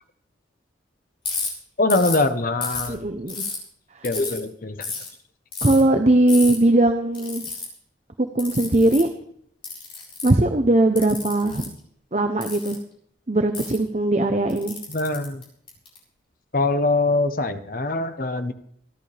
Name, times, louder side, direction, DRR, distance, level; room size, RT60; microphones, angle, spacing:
Ratchet pawl, 1.2-1.5 1.9-2.2 2.6-3.6 4.0-4.4 4.8-5.1 5.5-5.8 6.3-6.5 7.1-7.7 8.4-9.1 9.6-10.4 11.0-11.7 12.4-12.7 13.5-13.8 14.5-16.0, left 4 dB, 30° left, 5.6 m, -31 dB
voice 1, 1.8-3.0 4.0-4.9 14.9-15.4 16.5-18.5, left 2 dB, 45° left, 9 dB, 1.0 m, -23 dB
voice 2, 2.9-3.4 5.6-7.4 8.3-9.1 10.2-11.6 12.1-12.8 13.3-14.8, right 1 dB, 35° right, 7 dB, 0.8 m, -19 dB
26.0 x 11.5 x 3.4 m, 0.67 s
head